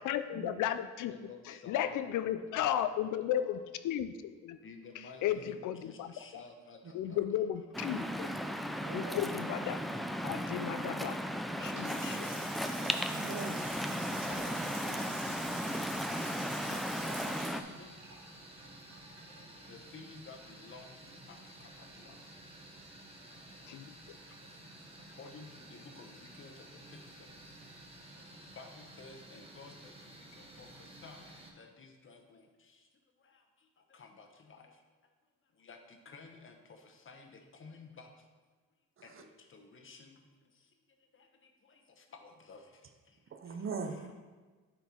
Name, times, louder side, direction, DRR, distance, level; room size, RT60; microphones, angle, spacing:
voice 1, 0.0-1.1 1.7-3.6 3.8-4.6 5.2-6.1 6.9-8.3 8.9-9.8 10.2-11.2 11.6-12.2 23.7-23.9, left 11 dB, 80° left, 11 dB, 0.5 m, -34 dB
voice 2, 1.1-3.6 4.6-7.0 7.4-7.9 11.6-12.1 12.4-12.6 14.3-15.1 16.7-18.0 19.7-21.0 21.3-21.7 22.0-22.1 25.2-26.1 26.4-26.5 28.6-29.9 30.6-30.7 31.0-32.4 33.9-34.6 35.6-36.5 37.1-38.1 39.0-40.1 42.1-42.6 43.8-44.1, left 4 dB, 40° left, 4 dB, 1.1 m, -52 dB
Waves surf, 7.7-17.6, equal, ahead, 0.3 m, -36 dB
voice 3, 8.8-9.3 13.1-13.7 43.3-44.1, right 5 dB, 45° right, 6 dB, 0.7 m, -41 dB
Water tap faucet / Sink (filling or washing) / Splash splatter, 11.6-19.6, right 2 dB, 85° right, 2.3 m, -47 dB
sound 1, 14.2-31.5, right 1 dB, 20° right, 1.2 m, -53 dB
9.1 x 4.5 x 4.4 m, 1.4 s
cardioid pair, 110°, 30 cm